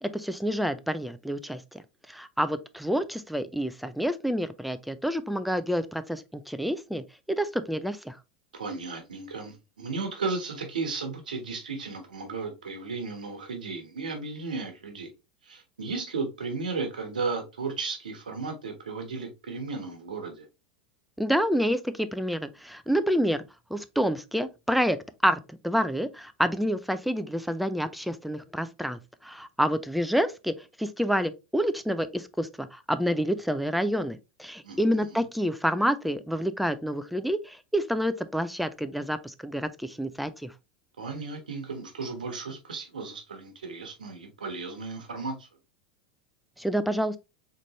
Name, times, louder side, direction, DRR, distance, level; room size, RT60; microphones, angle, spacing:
voice 1, 0.0-1.8 2.1-8.2 21.2-23.4 23.7-25.0 25.2-40.5 46.6-47.2, equal, ahead, 0.4 m, -28 dB
voice 2, 8.5-15.1 15.4-20.4 34.6-35.2 41.0-45.5, right 4 dB, 85° right, 1.1 m, -35 dB
4.1 x 3.2 x 3.0 m
hypercardioid pair, 85°, 4 cm